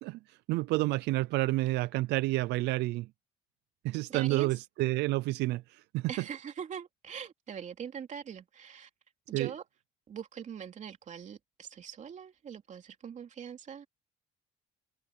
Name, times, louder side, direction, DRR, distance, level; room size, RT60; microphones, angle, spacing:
voice 1, 0.0-3.1 3.8-6.1 9.3-9.5, right 19 dB, 85° right, 0.5 m, -30 dB
voice 2, 4.1-4.5 6.1-8.9 9.3-9.6 10.1-13.9, right 8 dB, 45° right, 3.1 m, -42 dB
open air
cardioid pair, 110°, 17 cm